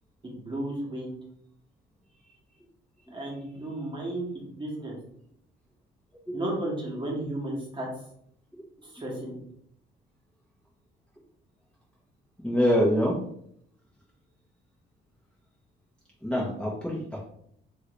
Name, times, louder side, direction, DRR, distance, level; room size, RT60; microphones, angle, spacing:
voice 1, 0.2-1.2 3.1-4.3 4.5-5.0 6.3-7.9 8.8-9.3, right 1 dB, 25° right, -3 dB, 1.3 m, -33 dB
voice 2, 12.4-13.2 16.2-17.3, equal, 5° left, -6 dB, 0.9 m, -25 dB
3.0 x 2.6 x 3.1 m, 0.68 s
cardioid pair, 90°, 20 cm